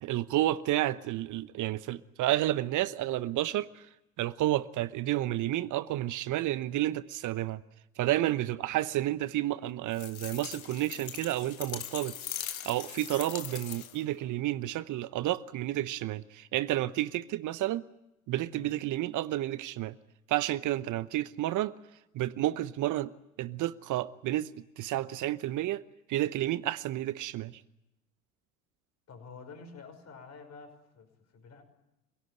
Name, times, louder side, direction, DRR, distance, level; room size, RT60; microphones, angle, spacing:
voice 1, 0.0-3.8 4.2-7.6 8.0-12.2 12.6-17.8 18.3-20.0 20.3-21.8 22.1-23.1 23.4-25.8 26.1-27.6, right 15 dB, 45° right, 1.0 m, -31 dB
sound 1, 9.9-14.1, left 10 dB, 85° left, 1.3 m, -41 dB
voice 2, 29.1-31.6, left 4 dB, 40° left, 5.7 m, -49 dB
26.5 x 17.5 x 9.6 m
hypercardioid pair, 70°, 41 cm